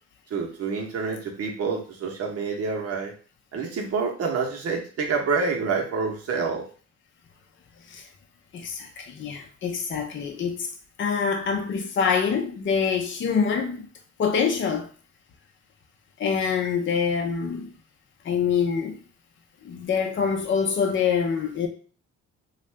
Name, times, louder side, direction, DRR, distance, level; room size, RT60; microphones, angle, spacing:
voice 1, 0.3-3.1 3.5-6.6, right 5 dB, 50° right, 1.0 m, -27 dB
voice 2, 8.5-10.7 11.0-13.9 14.2-14.9 16.2-17.7 18.2-19.0 19.6-21.7, left 6 dB, 40° left, 0.6 m, -25 dB
2.6 x 2.4 x 3.3 m
cardioid pair, 90°, 30 cm